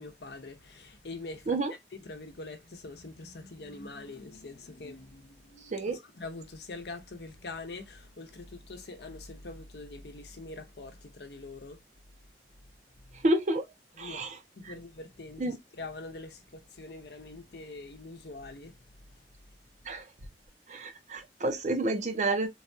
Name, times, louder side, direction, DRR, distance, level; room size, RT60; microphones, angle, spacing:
voice 1, 0.0-1.6 2.0-11.8 13.1-13.2 14.0-14.3 14.5-18.8, left 3 dB, 65° left, 0.7 m, -44 dB
voice 2, 13.2-13.7 14.0-14.4 14.7-14.8 15.4-15.6 19.9-20.0 20.7-22.5, right 2 dB, 45° right, 0.6 m, -29 dB
3.9 x 2.2 x 2.6 m
head